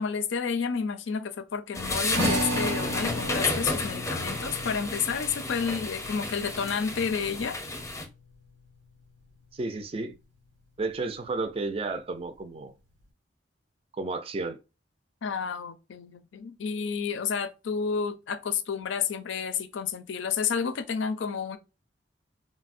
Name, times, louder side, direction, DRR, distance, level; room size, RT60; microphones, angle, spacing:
voice 1, 0.0-7.6 15.2-21.6, left 6 dB, 75° left, 0.4 m, -30 dB
sound 1, 1.7-8.0, left 2 dB, 15° left, 0.6 m, -32 dB
sound 2, 2.1-8.8, equal, 90° right, 1.0 m, -35 dB
voice 2, 9.5-10.1 10.8-12.7 13.9-14.6, right 3 dB, 30° right, 0.4 m, -32 dB
4.0 x 2.0 x 2.4 m
head